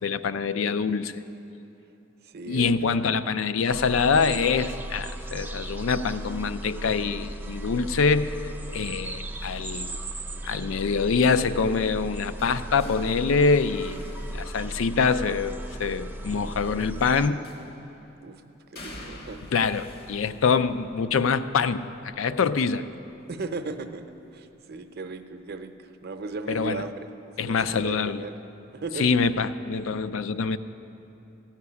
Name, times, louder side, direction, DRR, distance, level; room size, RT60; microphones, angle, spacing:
voice 1, 0.0-1.2 2.5-8.3 8.7-10.0 10.4-17.4 19.5-22.9 26.5-26.8 27.4-28.2 29.0-30.6, left 5 dB, 75° left, 13 dB, 0.4 m, -25 dB
voice 2, 2.2-2.7 16.4-16.6 18.2-18.4 18.7-19.5 23.3-24.0 24.3-27.1 27.4-28.4 28.7-29.2, right 3 dB, 50° right, 7 dB, 0.7 m, -36 dB
sound 1, 3.7-17.3, right 1 dB, 10° right, 0.6 m, -36 dB
sound 2, 11.2-15.2 17.4-18.0 18.7-24.6 24.9-25.3 26.6-26.7, left 1 dB, 50° left, 1.1 m, -48 dB
14.5 x 5.9 x 9.6 m, 3.0 s
head